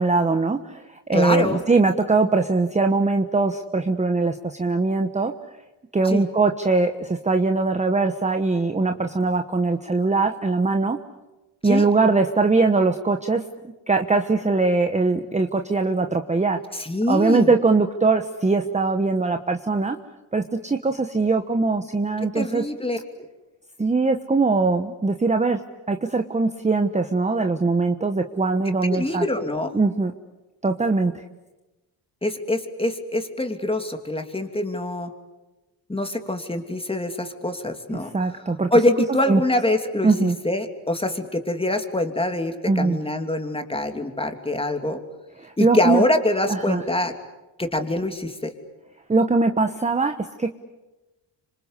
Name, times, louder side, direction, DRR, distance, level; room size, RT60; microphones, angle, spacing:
voice 1, 0.0-5.3 5.9-11.0 11.6-13.4 13.9-16.6 17.1-20.0 20.3-22.6 23.8-25.6 25.9-29.2 29.7-30.1 30.6-31.2 38.1-38.7 39.3-39.4 40.0-40.3 42.7-43.0 45.4-46.0 46.5-46.8 49.1-50.5, right 3 dB, 15° right, 6 dB, 1.2 m, -21 dB
voice 2, 1.1-1.6 6.0-6.3 11.6-11.9 16.7-17.5 22.2-23.0 28.9-29.7 32.2-35.1 35.9-38.1 38.7-45.0 45.6-47.1 47.6-48.5, left 1 dB, 10° left, 6 dB, 3.0 m, -24 dB
26.5 x 26.0 x 8.2 m, 1.1 s
cardioid pair, 95°, 49 cm